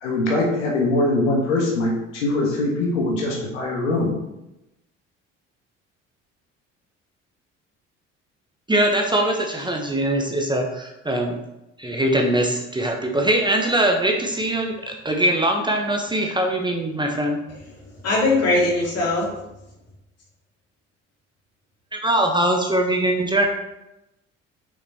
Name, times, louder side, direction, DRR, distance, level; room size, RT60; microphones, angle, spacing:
voice 1, 0.0-4.1, left 2 dB, 70° left, 0 dB, 1.5 m, -22 dB
voice 2, 8.7-11.3 11.8-17.4 21.9-23.5, right 1 dB, 10° right, 1 dB, 1.1 m, -22 dB
voice 3, 18.0-19.3, left 2 dB, 40° left, -3 dB, 2.8 m, -20 dB
6.6 x 5.7 x 4.2 m, 0.91 s
figure-of-eight pair, 55°, 37 cm